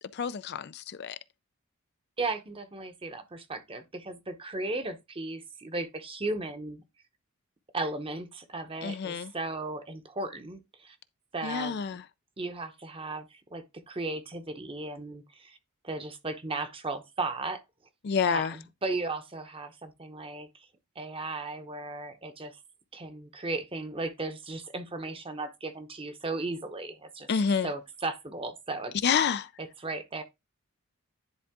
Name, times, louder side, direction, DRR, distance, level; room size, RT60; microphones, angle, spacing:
voice 1, 0.1-1.2 8.8-9.3 11.4-12.0 18.0-18.6 27.3-27.7 29.0-29.5, left 6 dB, 50° left, 0.4 m, -28 dB
voice 2, 2.2-6.8 7.7-11.0 11.3-11.8 12.4-15.6 15.8-17.6 18.3-20.7 21.0-22.6 22.9-27.3 27.6-28.9 29.8-30.2, right 2 dB, 25° right, 0.9 m, -36 dB
10.5 x 3.6 x 3.6 m
head